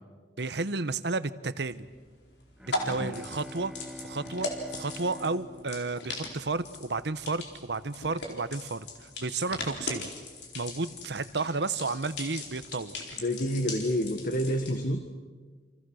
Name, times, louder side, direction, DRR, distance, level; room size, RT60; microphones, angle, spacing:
voice 1, 0.4-1.9 2.6-3.7 4.0-10.1 10.5-12.9, right 3 dB, 70° right, 13 dB, 1.0 m, -32 dB
sound 1, 1.6-14.8, left 2 dB, 75° left, 4.3 m, -39 dB
Bowed string instrument, 2.6-6.9, left 1 dB, 5° right, 1.0 m, -45 dB
voice 2, 13.2-15.0, equal, 55° left, 5 dB, 1.7 m, -29 dB
29.5 x 27.5 x 6.4 m, 1.4 s
head